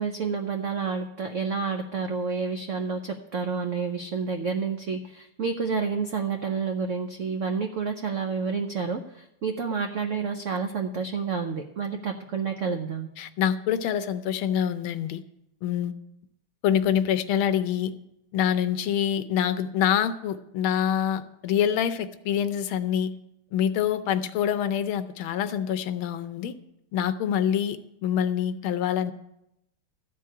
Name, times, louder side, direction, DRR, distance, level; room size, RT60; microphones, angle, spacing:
voice 1, 0.0-13.1, right 5 dB, 75° right, 5 dB, 0.7 m, -29 dB
voice 2, 13.2-15.2 15.6-15.9 16.6-17.9 18.3-23.1 23.5-26.5 26.9-29.1, left 9 dB, 80° left, 11 dB, 1.5 m, -26 dB
13.5 x 4.7 x 8.8 m, 0.84 s
omnidirectional pair, 2.3 m